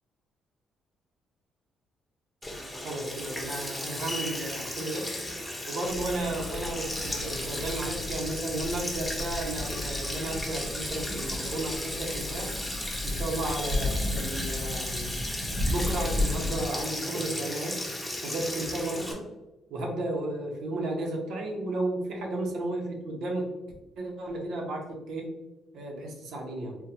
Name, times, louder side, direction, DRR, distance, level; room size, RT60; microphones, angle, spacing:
Sink (filling or washing), 2.4-19.1, left 1 dB, 10° left, 0.8 m, -35 dB
voice 1, 2.8-5.1 5.7-12.5 13.0-15.1 15.6-17.8 18.2-19.2 19.7-23.5 24.0-25.3 25.7-26.8, right 2 dB, 75° right, 0 dB, 0.9 m, -33 dB
sound 1, 5.9-16.7, left 2 dB, 25° right, 0.6 m, -34 dB
3.6 x 2.3 x 2.9 m, 1.0 s
cardioid pair, 90°, 0 cm